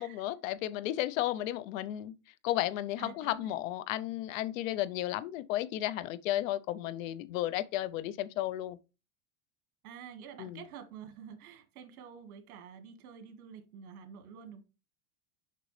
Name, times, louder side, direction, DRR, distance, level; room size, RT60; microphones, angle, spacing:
voice 1, 0.0-2.1 2.4-8.8 10.4-10.6, left 14 dB, 65° left, 0.6 m, -33 dB
voice 2, 3.0-3.6 9.8-14.6, right 7 dB, 80° right, 1.8 m, -49 dB
6.7 x 5.3 x 3.2 m
supercardioid pair, 160°, 43 cm